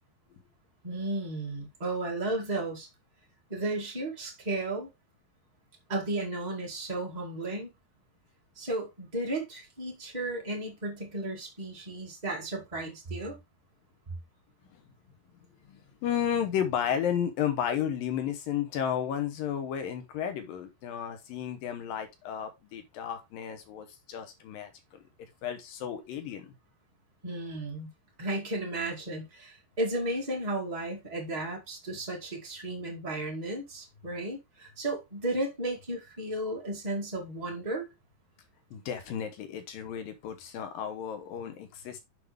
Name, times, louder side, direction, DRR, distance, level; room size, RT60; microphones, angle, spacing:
voice 1, 0.8-2.9 3.5-4.9 5.9-7.7 8.5-13.4 27.2-27.9 28.2-37.9, right 2 dB, 35° right, 0.6 m, -34 dB
voice 2, 15.7-25.0 25.4-26.5 38.7-42.0, left 9 dB, 70° left, 2.4 m, -33 dB
8.0 x 5.7 x 3.5 m
omnidirectional pair, 5.1 m